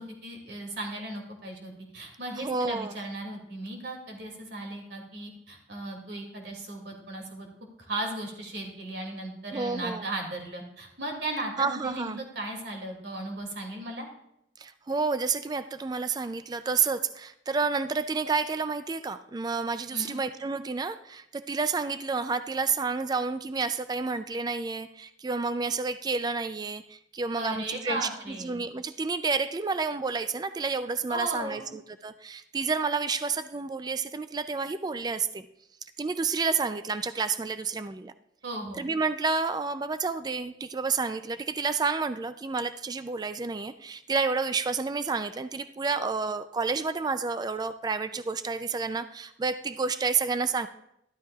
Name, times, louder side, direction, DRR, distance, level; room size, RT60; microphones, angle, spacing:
voice 1, 0.0-7.5 7.8-14.1 19.9-20.2 27.4-28.6 31.1-31.7 38.4-38.8, right 1 dB, 70° right, 1 dB, 2.4 m, -36 dB
voice 2, 2.4-2.9 9.5-10.1 11.6-12.2 14.6-35.5 35.8-38.1 38.8-50.7, right 4 dB, 20° right, 11 dB, 0.3 m, -30 dB
13.0 x 12.5 x 2.4 m, 0.78 s
head